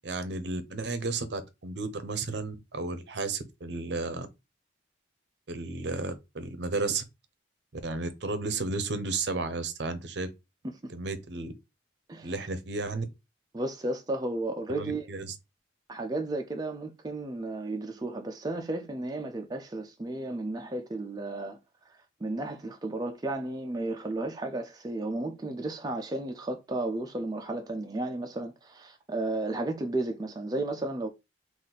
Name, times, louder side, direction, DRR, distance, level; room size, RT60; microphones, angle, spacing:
voice 1, 0.0-4.3 5.5-7.0 7.7-10.3 10.9-11.5 12.2-13.0 14.7-15.3, right 3 dB, 60° right, 0.6 m, -33 dB
voice 2, 13.5-15.1 15.9-21.6 21.9-31.1, right 2 dB, 20° right, 0.4 m, -33 dB
3.9 x 2.5 x 3.9 m
head